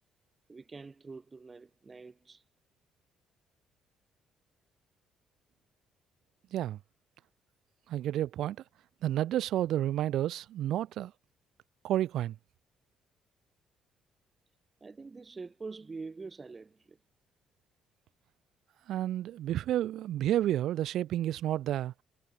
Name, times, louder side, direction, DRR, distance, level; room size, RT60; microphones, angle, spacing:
voice 1, 0.5-2.4 14.8-17.0, right 4 dB, 20° right, 5.3 m, -45 dB
voice 2, 7.9-8.6 9.0-11.1 11.8-12.4 18.9-21.9, right 12 dB, 70° right, 0.4 m, -30 dB
cardioid pair, 140°, 0 cm